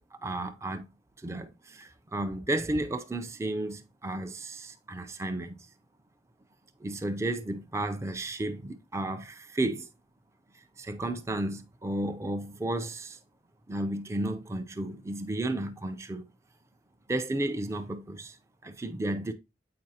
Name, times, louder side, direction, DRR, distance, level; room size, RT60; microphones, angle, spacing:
voice 1, 0.2-0.9 1.2-5.6 6.8-9.9 10.8-13.2 13.7-16.2 17.1-18.4 18.6-19.3, right 1 dB, 15° right, 0.4 m, -33 dB
7.5 x 4.6 x 2.7 m
head